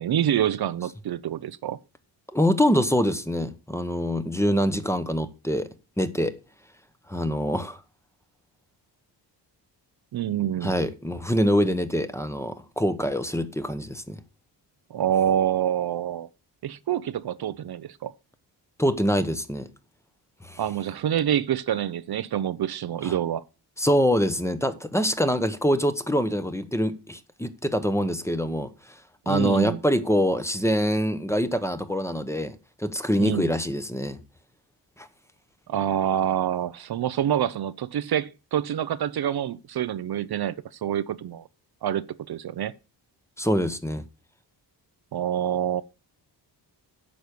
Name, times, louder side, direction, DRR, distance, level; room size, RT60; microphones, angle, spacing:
voice 1, 0.0-1.8 10.1-10.8 14.9-16.3 16.6-18.1 20.6-23.4 29.3-29.8 33.2-33.5 35.7-40.6 40.8-41.4 41.8-42.7 45.1-45.8, right 10 dB, 60° right, 0.7 m, -26 dB
voice 2, 2.3-5.7 6.0-6.3 7.1-7.8 10.6-14.2 18.8-19.7 20.4-20.6 23.0-23.1 23.8-28.7 29.3-34.2 35.0-35.1 43.4-44.0, equal, 5° left, 1.0 m, -25 dB
9.5 x 6.1 x 6.8 m
cardioid pair, 100°, 43 cm